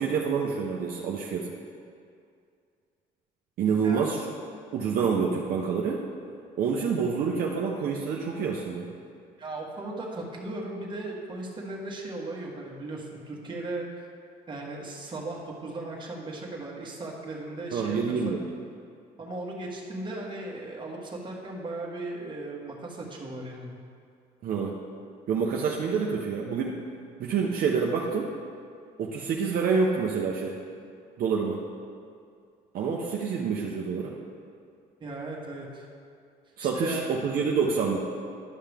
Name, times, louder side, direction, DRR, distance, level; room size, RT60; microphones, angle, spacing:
voice 1, 0.0-1.5 3.6-4.2 4.7-6.1 6.6-8.9 17.7-18.4 24.4-24.8 25.3-26.8 27.2-28.3 29.0-30.6 31.2-31.6 32.7-34.2 36.6-38.0, right 5 dB, 60° right, -2 dB, 0.8 m, -27 dB
voice 2, 9.4-14.0 14.5-18.3 19.2-23.8 35.0-35.9 36.6-37.1, right 2 dB, 30° right, -2 dB, 1.5 m, -37 dB
11.0 x 5.6 x 3.5 m, 2.3 s
cardioid pair, 110°, 17 cm